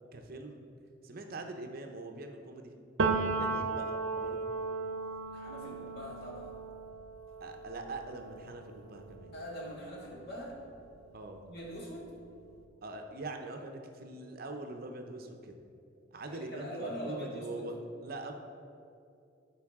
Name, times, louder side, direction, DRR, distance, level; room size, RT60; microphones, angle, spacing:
voice 1, 0.1-0.6 1.0-2.7 3.4-4.5 7.4-9.3 11.1-11.4 12.8-15.6 16.1-17.7 18.0-18.4, right 2 dB, 50° right, 4 dB, 0.6 m, -43 dB
Piano, 3.0-10.6 11.0-12.5, right 4 dB, 90° right, 0.6 m, -36 dB
voice 2, 5.3-6.5 9.3-10.6 11.5-12.1 16.2-17.7, equal, 55° left, -4 dB, 2.0 m, -42 dB
13.0 x 4.7 x 3.6 m, 2.6 s
head